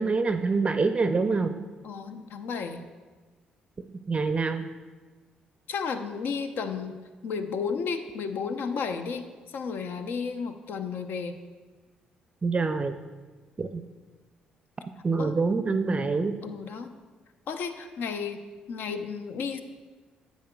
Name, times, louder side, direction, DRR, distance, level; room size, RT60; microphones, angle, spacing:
voice 1, 0.0-1.6 4.1-4.7 12.4-13.0 13.6-13.8 15.0-16.3, right 4 dB, 30° right, 8 dB, 0.5 m, -25 dB
voice 2, 1.8-2.8 5.7-6.9 7.2-11.4 15.2-15.3 16.4-16.9 17.5-18.4 18.7-19.6, left 5 dB, 60° left, 7 dB, 0.7 m, -33 dB
10.0 x 8.2 x 2.3 m, 1.4 s
figure-of-eight pair, 45°, 4 cm